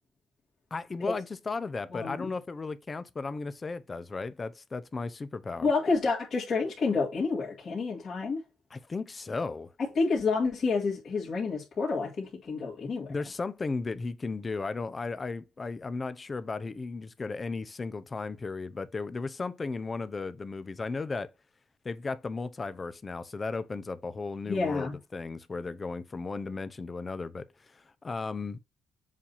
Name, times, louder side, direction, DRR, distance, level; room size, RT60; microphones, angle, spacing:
voice 1, 0.7-5.7 8.7-9.7 13.1-21.3 21.8-28.6, left 4 dB, 30° left, 0.7 m, -35 dB
voice 2, 1.9-2.4 5.6-8.4 10.0-13.1 24.5-25.0, left 4 dB, 50° left, 2.2 m, -29 dB
7.4 x 2.7 x 5.5 m
cardioid pair, 90°, 0 cm